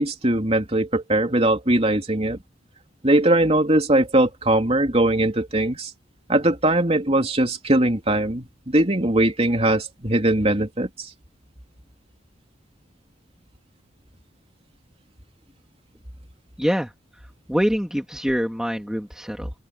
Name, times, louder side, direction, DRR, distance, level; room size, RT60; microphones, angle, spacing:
voice 1, 0.0-2.4 3.0-5.9 6.3-11.1, right 1 dB, 35° right, 3.5 m, -20 dB
voice 2, 16.6-16.9 17.5-19.5, equal, 5° right, 2.3 m, -24 dB
open air
head